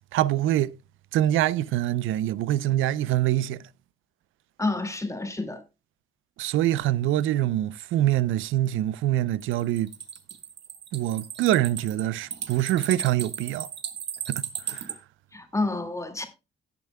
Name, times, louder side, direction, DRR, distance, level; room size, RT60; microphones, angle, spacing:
voice 1, 0.1-0.8 1.1-3.7 6.4-9.9 10.9-13.7 14.3-14.9, right 13 dB, 85° right, 0.6 m, -25 dB
voice 2, 4.6-5.6 15.3-16.3, left 2 dB, 15° left, 2.2 m, -29 dB
sound 1, 9.4-14.9, right 8 dB, 60° right, 1.6 m, -35 dB
17.5 x 6.9 x 2.2 m
cardioid pair, 90°, 20 cm